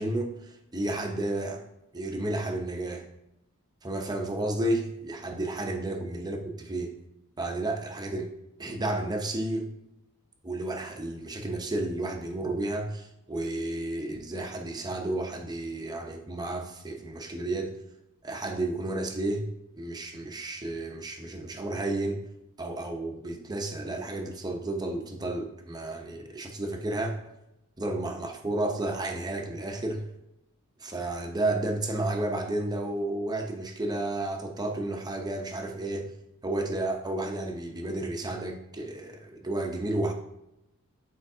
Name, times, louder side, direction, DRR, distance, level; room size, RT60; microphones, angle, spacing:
voice 1, 0.0-1.6 1.9-3.0 3.8-6.9 7.4-8.3 8.6-9.7 10.4-17.7 18.2-19.5 19.7-22.2 22.6-27.2 27.8-30.0 30.8-36.1 36.4-40.1, right 2 dB, 20° right, 3 dB, 0.7 m, -32 dB
8.9 x 4.5 x 2.7 m, 0.87 s
head